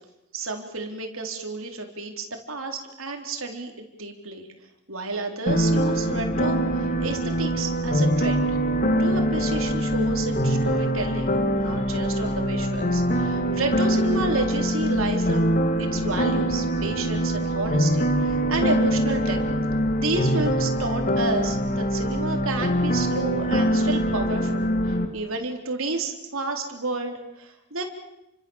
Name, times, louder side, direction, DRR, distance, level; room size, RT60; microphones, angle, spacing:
voice 1, 0.3-3.7 4.0-4.5 4.9-8.6 9.0-19.4 20.0-24.7 25.1-27.8, right 2 dB, 65° right, 4 dB, 4.1 m, -31 dB
sound 1, 5.5-25.1, equal, 40° left, 2.5 m, -23 dB
30.0 x 24.5 x 7.4 m, 0.90 s
head